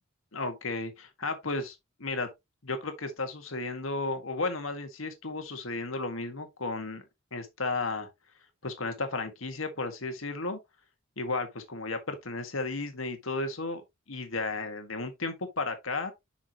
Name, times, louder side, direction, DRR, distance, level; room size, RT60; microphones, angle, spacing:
voice 1, 0.3-2.3 2.6-7.0 7.3-8.1 8.6-10.6 11.2-13.8 14.1-16.1, left 3 dB, 80° left, 1.7 m, -34 dB
7.4 x 6.0 x 3.0 m
head